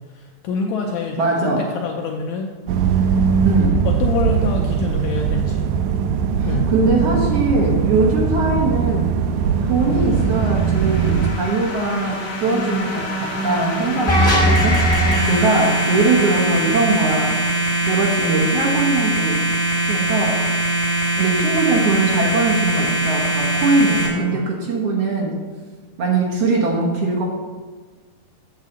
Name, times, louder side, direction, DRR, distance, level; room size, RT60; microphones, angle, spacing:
voice 1, 0.1-3.1 3.8-5.7 6.4-6.7 24.1-24.4, left 5 dB, 80° left, 1 dB, 1.7 m, -27 dB
voice 2, 1.2-1.7 3.4-3.9 6.4-9.2 9.6-17.6 17.8-19.4 19.8-20.5 21.2-25.4 26.0-27.2, right 3 dB, 60° right, -3 dB, 1.9 m, -21 dB
sound 1, 2.7-11.3, right 7 dB, 80° right, 1.7 m, -20 dB
sound 2, 9.5-18.1, equal, 50° left, 2.0 m, -29 dB
sound 3, 14.1-24.1, right 1 dB, 20° left, 1.4 m, -20 dB
8.4 x 7.2 x 3.9 m, 1.4 s
omnidirectional pair, 3.8 m